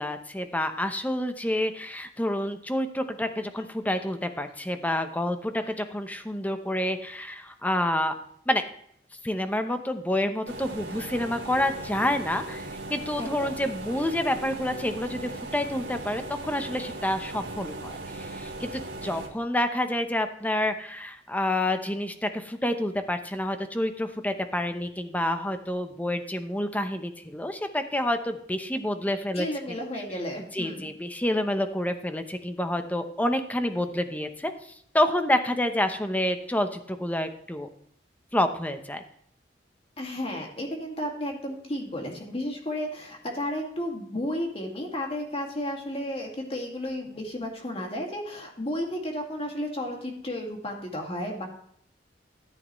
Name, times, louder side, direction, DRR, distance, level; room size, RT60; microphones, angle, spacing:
voice 1, 0.0-8.1 8.5-8.6 9.2-29.7 30.5-34.5 34.9-37.7 38.3-39.0, left 1 dB, 10° left, 8 dB, 0.8 m, -28 dB
sound 1, 10.5-19.3, right 2 dB, 70° right, 2.1 m, -38 dB
voice 2, 13.2-13.5 29.3-30.9 40.0-51.5, left 1 dB, 35° left, 1 dB, 2.1 m, -33 dB
13.5 x 8.6 x 3.1 m, 0.67 s
head